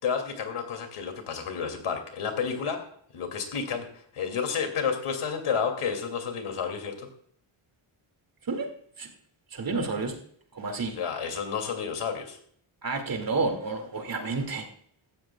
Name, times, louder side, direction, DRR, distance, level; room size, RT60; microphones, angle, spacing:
voice 1, 0.0-2.8 3.1-7.1 10.9-12.4, left 6 dB, 80° left, 5 dB, 2.8 m, -31 dB
voice 2, 9.5-10.1 10.5-11.0 12.8-14.7, right 3 dB, 45° right, 4 dB, 2.4 m, -30 dB
16.5 x 13.0 x 2.4 m, 0.62 s
wide cardioid pair, 155°, 50 cm